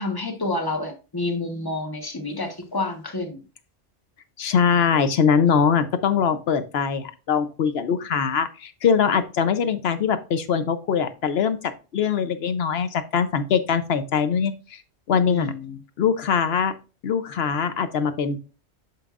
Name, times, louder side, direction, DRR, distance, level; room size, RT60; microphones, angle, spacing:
voice 1, 0.0-3.4 15.3-15.8, left 2 dB, 20° left, 4 dB, 1.1 m, -29 dB
voice 2, 4.4-14.8 15.1-15.5 16.0-16.7 17.0-18.4, left 6 dB, 65° left, 11 dB, 0.9 m, -22 dB
8.7 x 5.9 x 2.4 m, 0.32 s
omnidirectional pair, 1.2 m